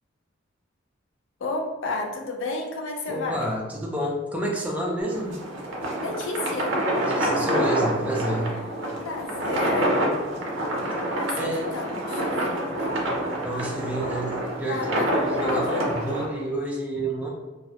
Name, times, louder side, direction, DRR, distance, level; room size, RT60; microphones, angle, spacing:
voice 1, 1.4-3.5 6.0-6.8 9.0-9.9 11.1-13.6 14.7-15.9, left 3 dB, 70° left, 1 dB, 0.4 m, -32 dB
voice 2, 3.1-5.4 7.0-8.5 11.4-11.7 13.4-17.3, right 1 dB, 5° right, -2 dB, 0.4 m, -29 dB
sound 1, 5.0-16.3, right 1 dB, 70° right, 0.5 m, -27 dB
2.3 x 2.0 x 2.7 m, 1.2 s
head